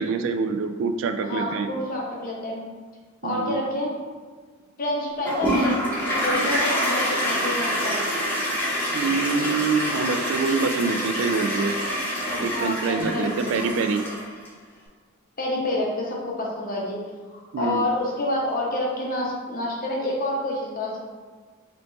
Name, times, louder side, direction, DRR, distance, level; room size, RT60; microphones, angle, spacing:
voice 1, 0.0-1.7 3.2-3.6 8.9-11.8 12.4-14.0 17.5-17.8, right 4 dB, 65° right, 8 dB, 0.3 m, -25 dB
voice 2, 1.2-2.6 3.2-3.9 4.8-5.8 6.1-8.1 12.5-13.7 15.4-17.0 17.6-21.0, left 1 dB, 45° left, -3 dB, 0.9 m, -28 dB
Toilet flush, 5.3-14.5, equal, 10° left, 1.1 m, -26 dB
3.4 x 3.0 x 3.9 m, 1.4 s
head